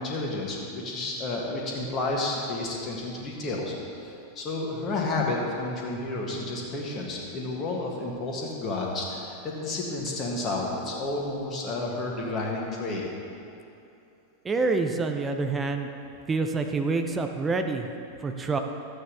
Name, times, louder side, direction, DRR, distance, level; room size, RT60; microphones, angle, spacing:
voice 1, 0.0-13.0, left 2 dB, 30° left, -2 dB, 2.0 m, -31 dB
voice 2, 14.4-15.9 16.3-17.9 18.2-18.6, right 3 dB, 15° right, 5 dB, 0.6 m, -27 dB
12.5 x 8.6 x 3.5 m, 2.8 s
figure-of-eight pair, 90°, 0 cm